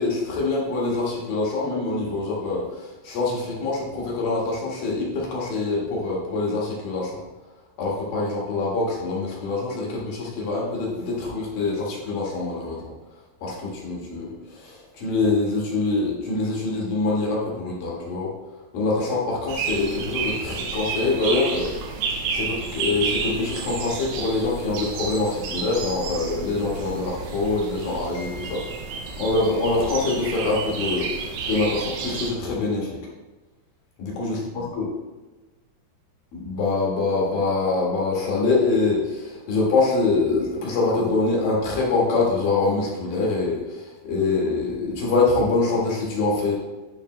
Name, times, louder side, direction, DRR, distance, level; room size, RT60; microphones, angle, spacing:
voice 1, 0.0-7.2 7.8-12.9 13.4-18.3 18.7-33.0 34.0-34.4 34.7-34.9 36.3-46.5, left 3 dB, 60° left, -3 dB, 2.9 m, -25 dB
sound 1, 19.5-32.3, right 5 dB, 85° right, 3.1 m, -31 dB
11.0 x 5.1 x 3.2 m, 1.2 s
omnidirectional pair, 5.0 m